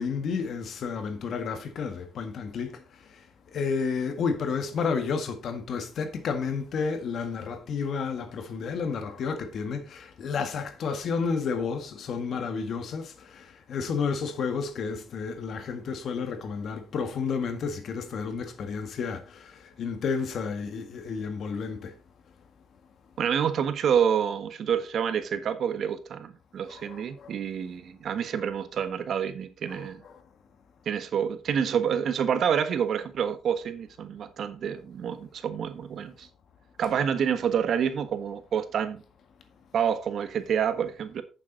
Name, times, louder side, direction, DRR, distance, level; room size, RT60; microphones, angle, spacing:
voice 1, 0.0-2.8 3.5-21.9 26.7-27.3 29.7-29.9, left 5 dB, 65° left, 1.7 m, -31 dB
voice 2, 23.2-30.0 30.8-36.3 36.8-39.0 39.7-41.2, right 8 dB, 65° right, 1.4 m, -28 dB
8.8 x 7.3 x 4.0 m
cardioid pair, 90°, 0 cm